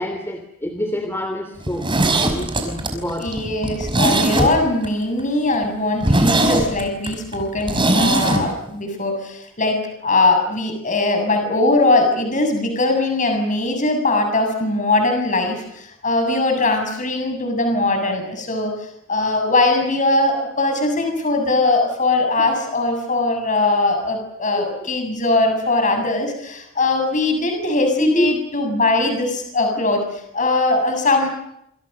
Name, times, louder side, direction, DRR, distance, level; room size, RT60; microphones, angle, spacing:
voice 1, 0.0-3.3 24.6-24.7 28.0-28.3, equal, 10° left, 6 dB, 2.8 m, -25 dB
Zipper (clothing), 1.6-4.9 5.2-5.3 5.6-5.7 6.0-8.4 8.7-8.8, right 1 dB, 25° right, 5.2 m, -19 dB
voice 2, 3.2-30.0 30.3-31.3, left 2 dB, 40° left, 5 dB, 7.4 m, -20 dB
27.0 x 27.0 x 6.8 m, 0.76 s
head